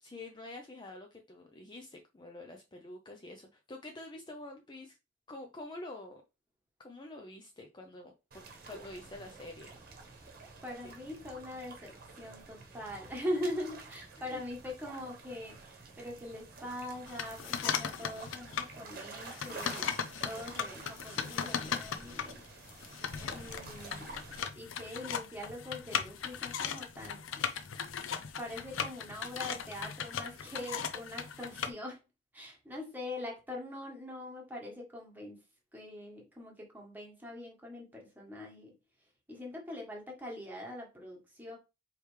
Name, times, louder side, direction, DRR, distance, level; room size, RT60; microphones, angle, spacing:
voice 1, 0.0-5.0 5.3-6.2 6.8-9.7 14.2-14.4, left 2 dB, 25° left, 3 dB, 0.5 m, -47 dB
sound 1, 8.3-24.4, right 3 dB, 50° right, 1.0 m, -50 dB
voice 2, 10.6-19.8 20.2-22.4 23.3-24.2 24.5-27.5 28.4-32.0 32.3-35.4 35.7-38.7 39.3-41.6, left 1 dB, 10° right, -1 dB, 1.4 m, -42 dB
sound 2, 17.1-18.7 19.2-31.7, left 7 dB, 75° left, 0.5 m, -37 dB
4.8 x 3.2 x 3.2 m, 0.27 s
head